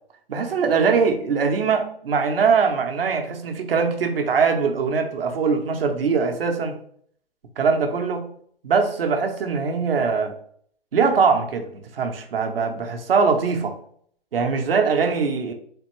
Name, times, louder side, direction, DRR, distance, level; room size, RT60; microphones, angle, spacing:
voice 1, 0.3-6.7 7.6-8.3 8.6-10.3 10.9-13.7 14.3-15.5, right 5 dB, 70° right, 5 dB, 0.9 m, -22 dB
3.8 x 3.4 x 3.0 m, 0.62 s
hypercardioid pair, 145°, 30 cm